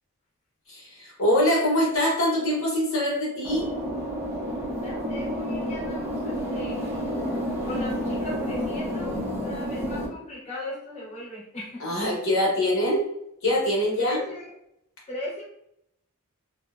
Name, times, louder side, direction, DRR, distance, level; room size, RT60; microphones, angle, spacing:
voice 1, 0.7-3.7 11.8-13.1 13.4-14.2, left 1 dB, 60° left, -3 dB, 0.9 m, -24 dB
sound 1, 3.4-10.1, equal, 10° right, 0.5 m, -30 dB
voice 2, 4.5-7.2 7.6-11.9 14.0-14.5 15.1-15.4, left 1 dB, 30° left, -6 dB, 0.7 m, -38 dB
2.7 x 2.1 x 2.3 m, 0.77 s
head